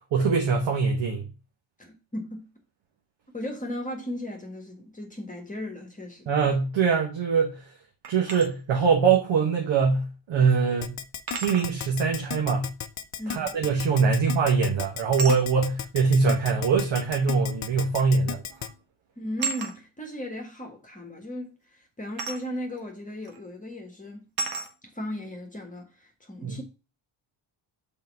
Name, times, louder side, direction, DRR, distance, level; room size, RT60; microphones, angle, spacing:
voice 1, 0.1-1.2 6.3-7.6 8.1-11.0 11.4-12.7 13.3-18.4 26.4-26.6, right 5 dB, 65° right, 1.5 m, -23 dB
voice 2, 1.8-2.5 3.3-6.3 13.2-13.6 19.2-24.2 24.8-26.6, equal, 15° left, 1.5 m, -36 dB
sound 1, 8.0-8.5 10.0-10.1 11.3-11.7 14.0-14.3 15.2-15.4 16.6-16.7 18.0-18.2 18.5-18.8 19.4-19.8 22.2-22.5 23.3-23.4 24.4-24.7, right 4 dB, 45° right, 1.4 m, -33 dB
Keyboard (musical), 10.8-18.7, left 8 dB, 35° left, 0.7 m, -34 dB
5.5 x 4.5 x 5.3 m
cardioid pair, 90°, 48 cm